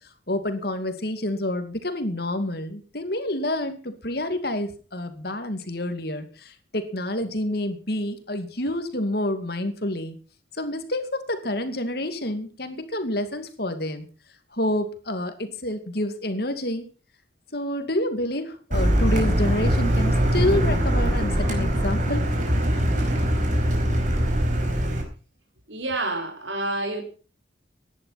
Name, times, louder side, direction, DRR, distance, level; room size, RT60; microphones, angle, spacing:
voice 1, 0.3-10.2 10.5-14.1 14.5-16.9 17.5-22.3, left 1 dB, 55° left, 8 dB, 2.5 m, -28 dB
Car, 18.7-25.0, equal, 40° right, 4.8 m, -22 dB
voice 2, 25.7-27.0, right 2 dB, 75° right, 4 dB, 4.7 m, -28 dB
16.5 x 11.0 x 5.9 m, 0.37 s
head